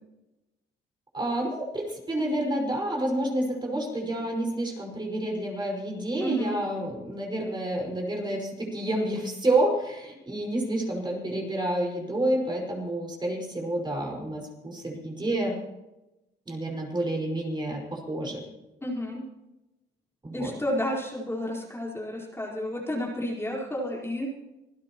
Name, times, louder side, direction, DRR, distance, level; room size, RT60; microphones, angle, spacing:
voice 1, 1.1-15.6 16.5-18.4 20.2-20.5, right 1 dB, 20° right, 0 dB, 5.3 m, -29 dB
voice 2, 6.2-6.6 18.8-19.2 20.3-24.3, equal, 10° left, -4 dB, 4.4 m, -31 dB
26.5 x 16.5 x 3.0 m, 1.0 s
cardioid pair, 90°, 20 cm